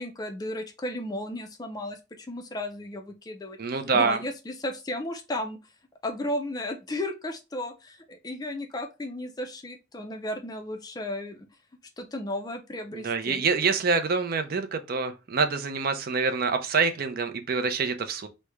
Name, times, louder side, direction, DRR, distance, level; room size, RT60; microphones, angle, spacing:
voice 1, 0.0-3.6 3.9-5.6 6.0-11.5 12.0-13.4, left 1 dB, 20° left, 0.4 m, -34 dB
voice 2, 3.6-4.2 12.9-18.3, right 4 dB, 50° right, 0.5 m, -26 dB
3.1 x 2.1 x 3.4 m
head